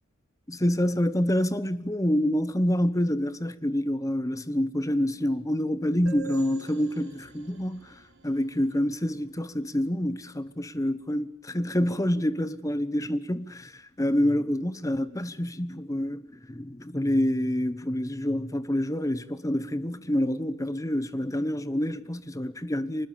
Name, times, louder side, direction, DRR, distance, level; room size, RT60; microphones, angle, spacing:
voice 1, 0.5-7.9 8.2-16.2 16.5-23.1, left 1 dB, 15° left, 1.1 m, -27 dB
sound 1, 6.1-9.6, right 7 dB, 70° right, 6.3 m, -46 dB
25.0 x 20.5 x 8.6 m
head